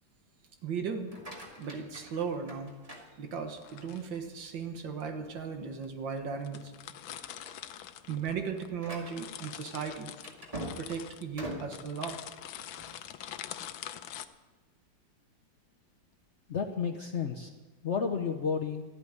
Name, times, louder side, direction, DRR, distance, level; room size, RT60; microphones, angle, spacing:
voice 1, 0.6-1.1 1.6-2.7 3.2-6.7 8.1-10.1 10.8-12.2, right 6 dB, 80° right, 6 dB, 2.1 m, -36 dB
sound 1, 1.0-3.8 4.3-4.7 5.2-5.3 5.7-5.8 6.5-6.8 7.1-13.0, right 1 dB, 20° right, 2.2 m, -45 dB
sound 2, 1.4-1.6 3.5-4.2 5.0-5.1 5.8-5.9 6.2-6.3 6.4-8.7 9.0-14.3, left 11 dB, 90° left, 1.4 m, -44 dB
voice 2, 16.5-17.5 17.8-18.8, left 6 dB, 55° left, 5 dB, 0.8 m, -31 dB
13.5 x 8.5 x 9.4 m, 1.2 s
omnidirectional pair, 2.0 m